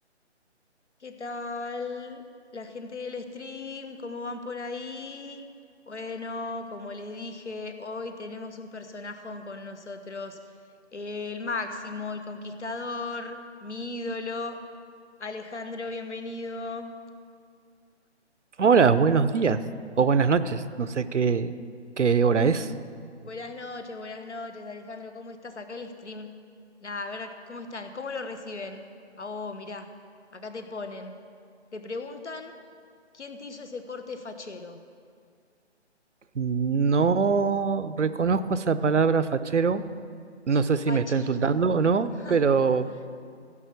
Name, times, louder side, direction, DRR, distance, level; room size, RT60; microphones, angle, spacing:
voice 1, 1.0-2.2 2.5-5.4 5.9-10.4 10.9-14.6 15.2-16.9 22.3-22.5 23.2-26.3 26.8-28.9 29.2-29.9 30.3-31.2 31.7-32.5 33.1-34.8 40.9-41.4 42.1-42.4 42.8-43.0, left 3 dB, 75° left, 8 dB, 1.2 m, -37 dB
voice 2, 18.6-19.6 20.0-21.5 22.0-22.6 36.4-39.8 40.5-42.9, right 5 dB, 80° right, 13 dB, 0.7 m, -22 dB
16.0 x 5.5 x 6.8 m, 2.2 s
figure-of-eight pair, 150°, 35 cm